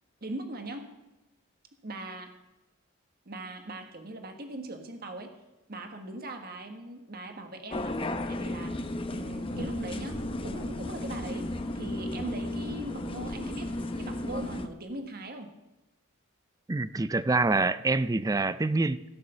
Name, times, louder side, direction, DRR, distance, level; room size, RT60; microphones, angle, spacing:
voice 1, 0.2-1.0 1.8-2.4 3.2-5.4 5.7-8.0 8.2-8.8 9.1-13.7 14.0-15.5, right 1 dB, 50° right, 5 dB, 1.5 m, -40 dB
sound 1, 7.7-14.7, left 1 dB, 25° left, 0.8 m, -34 dB
sound 2, 9.5-14.5, left 1 dB, 75° left, 1.7 m, -44 dB
voice 2, 16.7-19.0, right 3 dB, 15° right, 15 dB, 0.4 m, -26 dB
16.0 x 6.5 x 8.0 m, 0.98 s
head